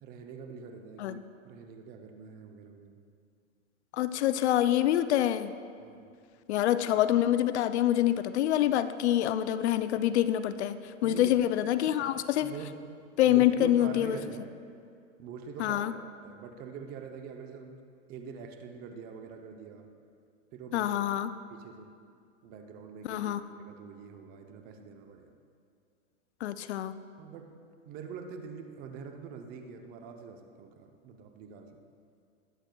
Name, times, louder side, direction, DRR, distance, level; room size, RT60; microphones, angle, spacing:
voice 1, 0.0-3.0 5.8-6.1 11.0-11.4 11.8-12.1 12.4-12.8 13.2-14.5 15.2-17.8 18.1-19.9 20.5-21.1 21.5-21.9 22.4-25.3 27.2-27.5 27.9-31.8, right 6 dB, 25° right, 5 dB, 0.6 m, -45 dB
voice 2, 3.9-5.5 6.5-12.5 13.2-14.2 15.6-15.9 20.7-21.3 23.0-23.4 26.4-27.0, left 12 dB, 60° left, 13 dB, 0.5 m, -26 dB
20.0 x 7.8 x 2.2 m, 2.3 s
hypercardioid pair, 140°, 39 cm